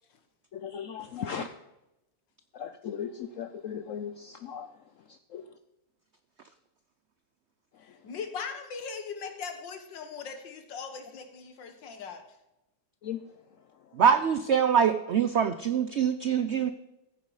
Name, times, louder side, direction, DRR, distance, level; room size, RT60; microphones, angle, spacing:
voice 1, 0.5-1.5 2.5-4.7 5.1-5.4 13.0-13.2, left 8 dB, 70° left, 10 dB, 0.8 m, -37 dB
voice 2, 7.8-12.2, left 5 dB, 90° left, 7 dB, 2.0 m, -39 dB
voice 3, 13.9-16.7, right 7 dB, 80° right, 11 dB, 0.6 m, -24 dB
15.0 x 9.2 x 4.8 m, 0.93 s
omnidirectional pair, 1.9 m